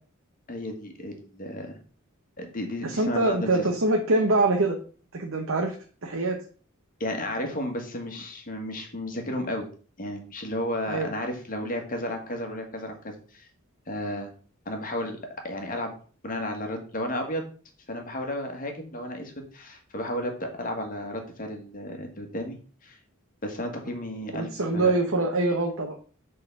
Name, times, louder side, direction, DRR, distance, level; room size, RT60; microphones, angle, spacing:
voice 1, 0.5-1.8 2.4-3.7 7.0-9.7 10.0-13.5 13.9-14.3 14.6-15.2 15.4-15.9 16.2-17.4 17.9-22.6 22.8-23.0 23.4-24.9, left 1 dB, 40° left, 4 dB, 1.5 m, -33 dB
voice 2, 2.8-4.8 5.1-5.7 6.0-6.4 10.9-11.1 24.3-26.0, right 2 dB, 65° right, 2 dB, 1.0 m, -24 dB
6.7 x 3.9 x 5.4 m, 0.41 s
head